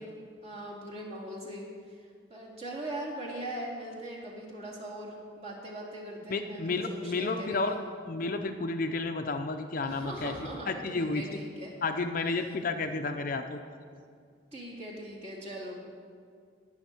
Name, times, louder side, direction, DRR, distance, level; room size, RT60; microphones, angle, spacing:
voice 1, 0.0-7.8 9.8-11.7 12.2-12.5 14.5-15.7, right 1 dB, 35° right, -4 dB, 2.2 m, -41 dB
voice 2, 6.3-7.7 8.1-10.3 10.7-11.2 11.8-13.6, left 3 dB, 45° left, 6 dB, 0.5 m, -31 dB
18.5 x 6.4 x 4.5 m, 2.2 s
head